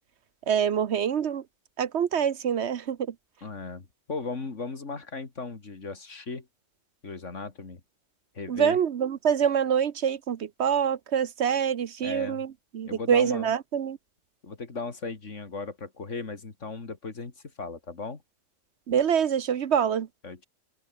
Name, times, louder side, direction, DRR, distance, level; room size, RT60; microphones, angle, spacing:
voice 1, 0.5-1.4 1.8-3.1 8.5-14.0 18.9-20.1, right 8 dB, 65° right, 1.1 m, -25 dB
voice 2, 3.4-6.5 7.0-7.8 8.3-8.8 12.0-12.4 12.8-13.5 14.4-17.3 17.6-18.2 20.2-20.5, left 4 dB, 70° left, 2.9 m, -37 dB
open air
omnidirectional pair, 1.3 m